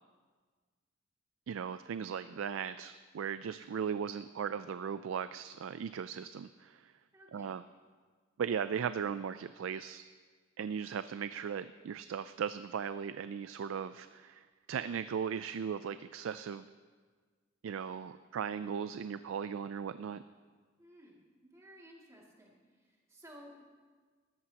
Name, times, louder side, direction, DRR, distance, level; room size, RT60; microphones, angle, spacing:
voice 1, 1.5-6.9 7.3-7.6 8.4-10.0 10.6-16.7 17.6-20.2, right 7 dB, 75° right, 12 dB, 0.3 m, -37 dB
voice 2, 7.1-7.6 20.8-23.6, equal, 15° right, -3 dB, 2.3 m, -56 dB
18.5 x 14.0 x 2.9 m, 1.5 s
head